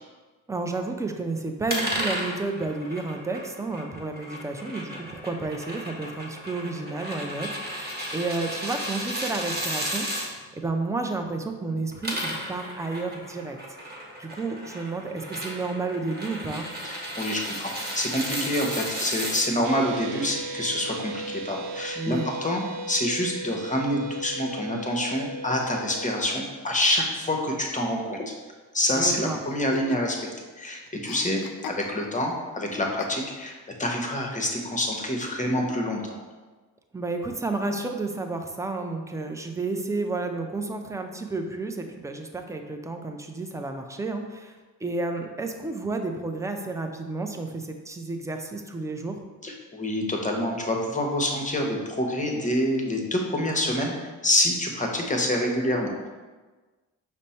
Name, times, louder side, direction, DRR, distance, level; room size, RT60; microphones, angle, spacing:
voice 1, 0.5-13.6 14.2-16.7 22.0-22.3 28.9-29.4 36.9-49.2, right 3 dB, 10° right, 4 dB, 0.4 m, -31 dB
sound 1, 1.7-10.3 11.8-19.4, equal, 25° right, 1.4 m, -34 dB
voice 2, 16.8-28.3 28.7-30.2 30.6-31.4 31.7-33.5 33.8-36.1 49.4-53.9 54.2-56.1, left 1 dB, 20° left, 1 dB, 0.9 m, -27 dB
sound 2, 19.6-26.3, right 2 dB, 85° right, 0.5 m, -36 dB
Chuckle chortle, 29.0-30.4 30.6-32.3 33.0-33.6, left 7 dB, 55° left, 0.5 m, -40 dB
5.2 x 2.1 x 4.2 m, 1.3 s
supercardioid pair, 55°, 40 cm